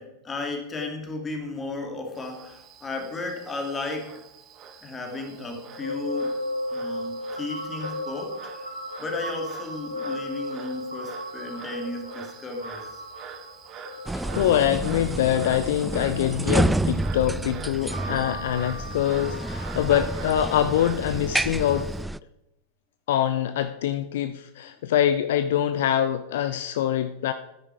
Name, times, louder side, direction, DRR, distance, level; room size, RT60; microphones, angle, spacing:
voice 1, 0.0-4.2 4.8-6.4 6.7-8.7 9.0-13.0, left 3 dB, 20° left, 3 dB, 2.7 m, -34 dB
Frog, 2.2-22.0, right 6 dB, 30° right, 1.4 m, -45 dB
sound 1, 5.3-17.1 17.8-20.4, left 1 dB, 90° right, 2.3 m, -36 dB
sound 2, 14.1-22.2, right 1 dB, 5° right, 0.3 m, -29 dB
voice 2, 14.3-21.9 23.1-27.3, left 10 dB, 55° left, 10 dB, 0.6 m, -24 dB
13.0 x 9.7 x 4.8 m, 0.89 s
figure-of-eight pair, 90°, 0 cm